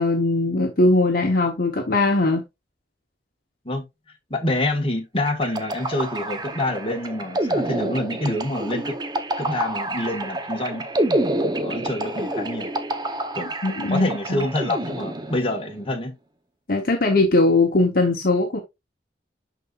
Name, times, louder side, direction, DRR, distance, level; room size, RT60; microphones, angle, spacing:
voice 1, 0.0-2.4 13.6-14.4 16.7-18.6, left 2 dB, 55° left, 1.0 m, -20 dB
voice 2, 4.3-9.0 9.4-10.9 11.6-12.7 13.3-13.5 13.9-16.1, left 1 dB, 30° left, 1.6 m, -27 dB
sound 1, 5.3-15.7, right 1 dB, 25° right, 0.8 m, -28 dB
11.5 x 4.1 x 2.5 m
head